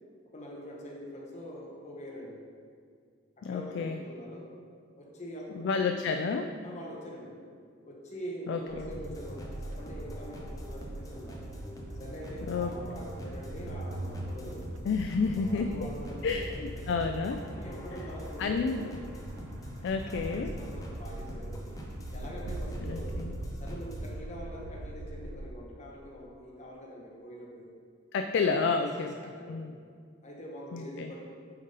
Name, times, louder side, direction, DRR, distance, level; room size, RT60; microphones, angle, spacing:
voice 1, 0.3-2.4 3.4-4.5 4.9-5.8 6.6-7.3 7.8-11.4 12.0-14.6 15.3-16.7 17.5-18.9 20.0-21.6 22.1-23.2 23.6-27.7 28.8-29.6 30.2-31.2, equal, 35° left, -2 dB, 1.1 m, -44 dB
voice 2, 3.4-4.0 5.6-6.6 8.5-8.9 12.5-12.7 14.8-15.8 16.2-17.5 18.4-18.8 19.8-20.6 22.8-23.4 28.1-29.1 29.5-29.7 30.7-31.1, left 4 dB, 60° left, 5 dB, 0.3 m, -30 dB
sound 1, 8.7-25.5, right 1 dB, 65° right, 0.4 m, -42 dB
sound 2, 8.9-24.1, equal, 15° left, 0.7 m, -44 dB
8.9 x 3.9 x 3.9 m, 2.1 s
head